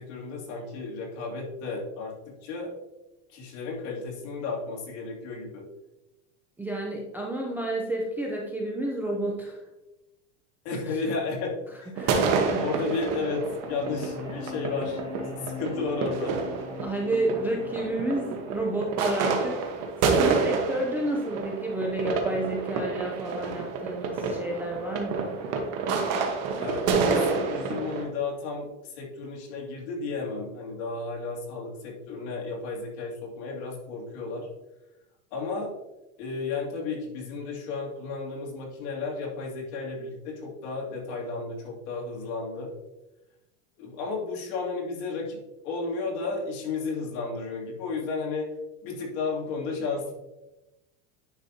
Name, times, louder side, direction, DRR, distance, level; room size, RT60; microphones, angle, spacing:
voice 1, 0.0-2.7 3.3-5.7 10.6-16.4 26.5-34.5 35.3-35.7 36.2-42.7 43.8-48.5 48.8-50.1, left 4 dB, 55° left, -2 dB, 2.8 m, -33 dB
voice 2, 6.6-9.6 11.9-12.8 16.8-19.6 20.0-25.4, right 1 dB, 5° right, -2 dB, 0.4 m, -30 dB
sound 1, 12.0-28.0, right 4 dB, 40° right, 1.2 m, -29 dB
sound 2, 13.6-19.6, left 6 dB, 40° left, 2.8 m, -41 dB
9.8 x 5.9 x 2.8 m, 1.0 s
supercardioid pair, 155°, 39 cm